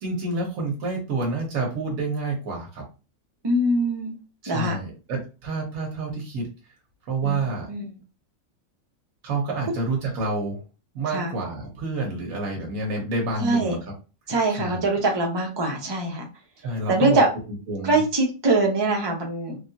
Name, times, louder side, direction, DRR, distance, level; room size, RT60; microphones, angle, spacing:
voice 1, 0.0-2.9 4.4-6.5 7.1-7.7 9.2-10.6 10.9-13.8 14.6-14.9 16.6-17.2 17.7-18.0, right 3 dB, 90° right, -1 dB, 1.3 m, -28 dB
voice 2, 3.4-4.1 4.5-4.8 7.2-7.4 7.7-7.8 11.1-11.3 13.4-13.8 14.3-16.3 16.9-17.3 17.8-19.6, right 2 dB, 25° right, 0 dB, 0.6 m, -23 dB
3.4 x 2.4 x 2.6 m, 0.32 s
omnidirectional pair, 1.4 m